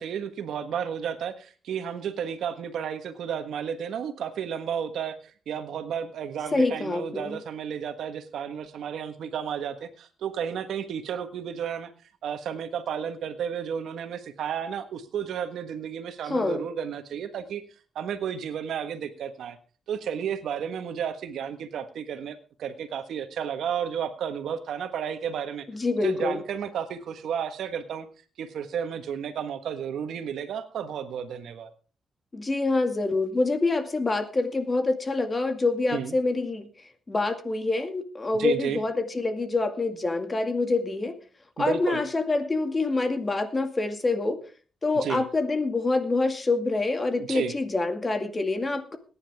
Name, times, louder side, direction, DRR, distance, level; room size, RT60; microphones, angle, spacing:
voice 1, 0.0-11.9 12.2-17.6 17.9-19.6 19.9-25.7 26.0-28.1 28.4-31.7 35.9-36.1 38.4-38.8 41.6-42.0 44.9-45.2 47.2-47.5, right 8 dB, 85° right, 9 dB, 1.4 m, -32 dB
voice 2, 6.5-7.4 16.3-16.6 25.7-26.4 32.3-36.7 37.1-41.2 41.6-44.4 44.8-49.0, left 3 dB, 30° left, 8 dB, 2.1 m, -26 dB
21.0 x 10.0 x 3.6 m, 0.37 s
cardioid pair, 95°, 0 cm